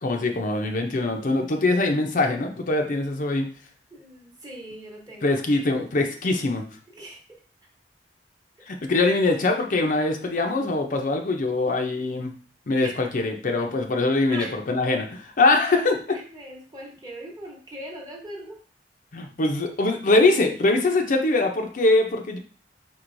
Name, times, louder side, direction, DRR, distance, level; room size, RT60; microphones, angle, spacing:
voice 1, 0.0-3.5 5.2-6.6 8.7-12.3 12.7-16.0 19.1-22.4, left 2 dB, 50° left, 3 dB, 0.6 m, -23 dB
voice 2, 3.9-5.4 6.9-7.2 12.8-13.0 14.3-14.5 16.1-18.6, right 1 dB, 20° right, -1 dB, 1.0 m, -40 dB
4.5 x 3.8 x 2.6 m, 0.42 s
head